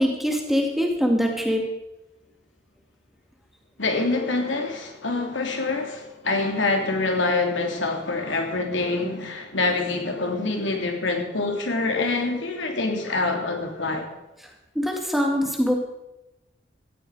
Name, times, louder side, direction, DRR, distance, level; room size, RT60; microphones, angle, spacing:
voice 1, 0.0-1.7 14.7-15.7, equal, ahead, 2.3 m, -23 dB
voice 2, 3.8-14.1, left 3 dB, 85° left, 3.2 m, -25 dB
17.5 x 14.5 x 5.0 m
head